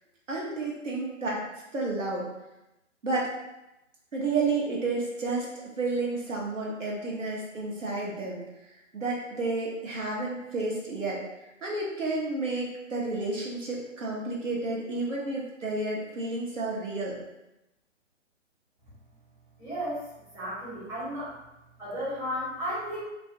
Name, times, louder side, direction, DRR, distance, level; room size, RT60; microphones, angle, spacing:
voice 1, 0.3-1.4 1.7-2.3 3.0-3.3 4.1-8.4 8.9-11.2 11.6-17.2, right 3 dB, 90° right, -3 dB, 0.9 m, -31 dB
voice 2, 19.6-20.0 20.3-21.3 21.8-23.0, equal, 10° right, -11 dB, 0.8 m, -33 dB
2.4 x 2.1 x 2.6 m, 0.92 s
figure-of-eight pair, 130°, 37 cm